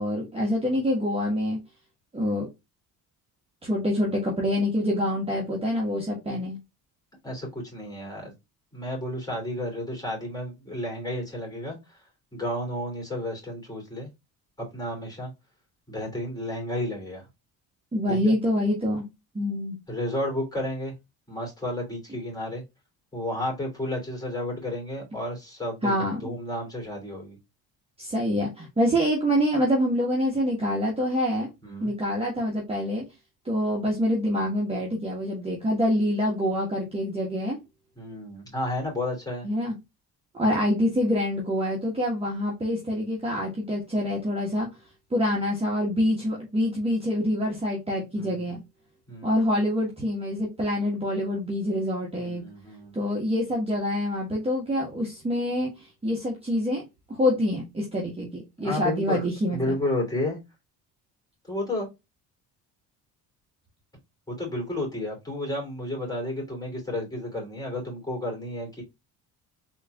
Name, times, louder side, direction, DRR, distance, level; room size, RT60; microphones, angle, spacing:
voice 1, 0.0-1.6 2.1-2.5 3.6-6.6 17.9-19.1 19.3-19.8 25.8-26.3 28.0-31.5 31.8-33.0 33.4-37.6 39.4-39.8 40.4-44.7 45.1-48.6 49.2-52.4 52.9-56.8 57.2-59.8, equal, 15° right, -3 dB, 1.2 m, -26 dB
voice 2, 7.2-8.3 8.7-12.0 12.3-14.1 14.6-15.3 15.9-17.2 18.1-18.3 19.9-20.9 21.3-22.6 23.1-27.4 31.6-31.9 38.0-39.5 48.2-48.5 49.1-49.4 52.2-53.0 58.6-60.4 61.5-61.9 64.3-68.8, left 1 dB, 10° left, 0 dB, 2.7 m, -32 dB
4.4 x 3.4 x 2.2 m, 0.22 s
cardioid pair, 115°, 36 cm